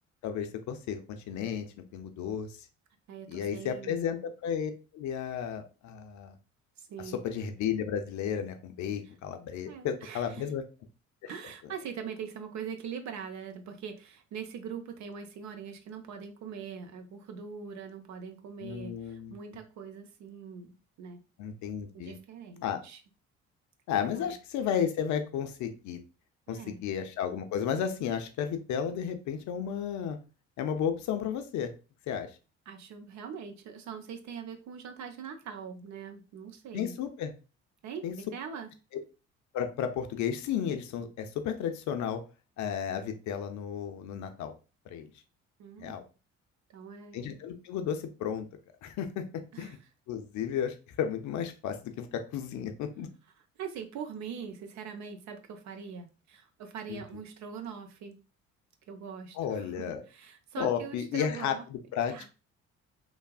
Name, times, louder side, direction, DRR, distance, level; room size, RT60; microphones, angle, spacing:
voice 1, 0.2-1.7 1.9-2.6 3.3-6.3 7.2-10.6 11.2-11.3 18.6-19.4 21.4-22.2 22.6-22.8 23.9-26.0 26.5-30.2 30.6-31.7 32.1-32.3 36.7-37.3 38.0-38.1 39.5-42.2 42.6-44.5 44.9-45.1 45.8-46.0 47.1-48.5 48.8-49.2 49.6-49.8 50.1-53.1 56.9-57.0 59.4-60.0 60.6-62.1, left 8 dB, 50° left, 7 dB, 0.5 m, -33 dB
voice 2, 3.1-4.0 6.8-7.2 9.7-10.5 11.3-21.2 21.9-23.0 24.1-24.3 26.5-26.8 32.7-37.0 37.8-38.7 45.6-45.9 46.7-47.3 49.5-49.8 53.6-58.2 58.9-61.6 62.1-62.3, right 6 dB, 50° right, 7 dB, 0.5 m, -42 dB
3.2 x 2.0 x 2.3 m, 0.33 s
figure-of-eight pair, 50°, 38 cm